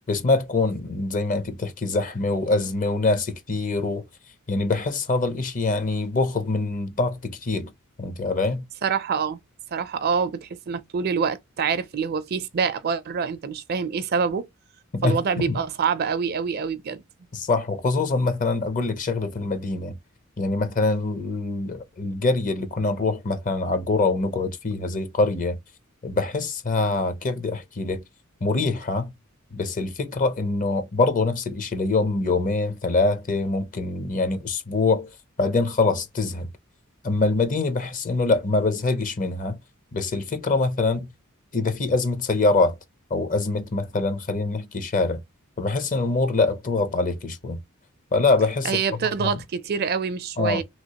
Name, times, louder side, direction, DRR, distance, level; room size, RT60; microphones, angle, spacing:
voice 1, 0.1-4.1 4.5-7.7 8.0-8.6 14.9-15.6 17.3-20.0 20.4-25.6 26.0-28.0 28.4-29.1 29.5-35.1 35.4-36.5 37.0-39.6 39.9-41.1 41.5-42.8 43.1-45.2 45.6-47.6 48.1-48.8 49.2-49.3 50.4-50.6, left 3 dB, 40° left, 0.7 m, -24 dB
voice 2, 8.8-9.4 9.7-14.5 15.0-17.0 48.6-50.6, right 6 dB, 45° right, 0.4 m, -26 dB
3.0 x 3.0 x 2.8 m
head